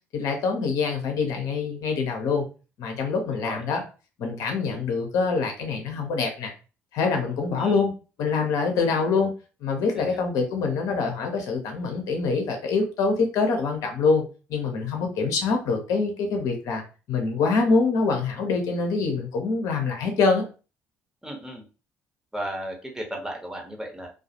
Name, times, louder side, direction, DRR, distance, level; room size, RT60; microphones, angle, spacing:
voice 1, 0.1-2.4 2.8-3.8 4.2-6.5 6.9-7.9 8.2-9.3 9.6-14.2 14.5-16.8 17.1-20.4, left 4 dB, 60° left, 3 dB, 0.6 m, -25 dB
voice 2, 3.3-3.6 7.6-7.9 9.2-9.3 9.9-10.2 21.2-21.6 22.3-24.1, right 1 dB, 10° right, 1 dB, 0.9 m, -35 dB
2.3 x 2.1 x 2.8 m, 0.33 s
hypercardioid pair, 50°, 6 cm